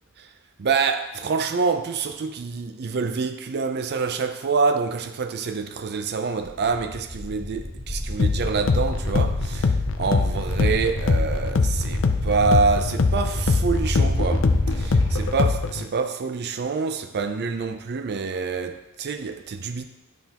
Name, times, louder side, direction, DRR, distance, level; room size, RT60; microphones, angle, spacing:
voice 1, 0.6-19.8, right 4 dB, 45° right, 0.5 m, -26 dB
sound 1, 6.5-15.4, equal, 15° left, 1.4 m, -28 dB
sound 2, 8.2-15.9, left 4 dB, 55° left, 0.5 m, -23 dB
11.0 x 5.8 x 2.9 m
head